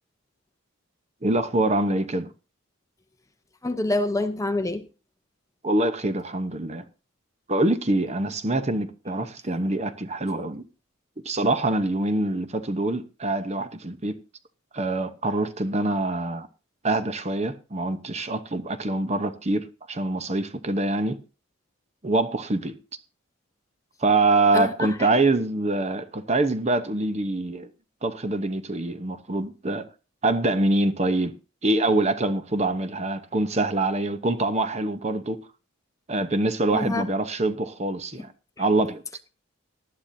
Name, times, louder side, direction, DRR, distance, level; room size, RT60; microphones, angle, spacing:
voice 1, 1.2-2.3 5.6-6.9 7.5-10.6 11.2-14.2 14.7-16.5 16.8-21.2 22.0-22.8 24.0-27.7 28.0-29.8 30.2-31.3 31.6-35.4 36.1-38.3 38.6-39.0, right 2 dB, 30° right, 0.9 m, -25 dB
voice 2, 3.6-4.9 24.5-25.1 36.7-37.0, left 2 dB, 15° left, 0.7 m, -26 dB
19.0 x 11.5 x 2.7 m
head